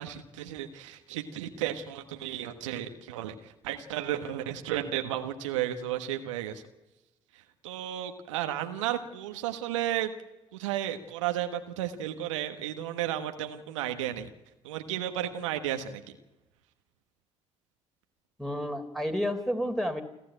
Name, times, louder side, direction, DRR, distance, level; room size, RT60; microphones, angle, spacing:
voice 1, 0.0-6.6 7.6-10.1 10.6-14.3 14.6-16.0, right 11 dB, 85° right, 7 dB, 1.4 m, -33 dB
voice 2, 18.4-20.0, equal, ahead, 6 dB, 4.0 m, -30 dB
29.0 x 12.5 x 9.1 m, 0.99 s
hypercardioid pair, 50°, 16 cm